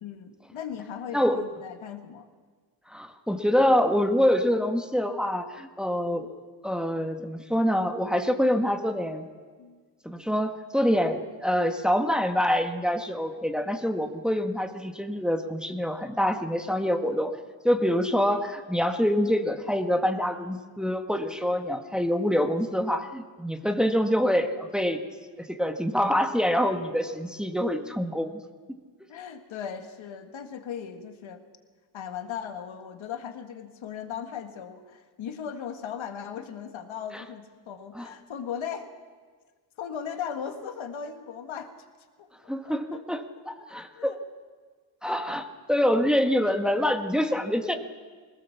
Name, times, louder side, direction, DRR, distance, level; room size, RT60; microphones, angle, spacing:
voice 1, 0.0-2.3 9.6-9.8 29.1-31.4 31.9-38.9 39.8-41.7 42.2-42.3 42.6-43.0 44.0-44.2, left 8 dB, 75° left, 6 dB, 1.9 m, -37 dB
voice 2, 2.9-9.3 10.0-17.4 17.6-25.0 25.4-28.4 37.1-37.2 37.9-38.1 42.5-44.2 45.0-47.7, equal, ahead, 5 dB, 1.7 m, -26 dB
20.5 x 17.5 x 7.3 m, 1.5 s
cardioid pair, 60°, 47 cm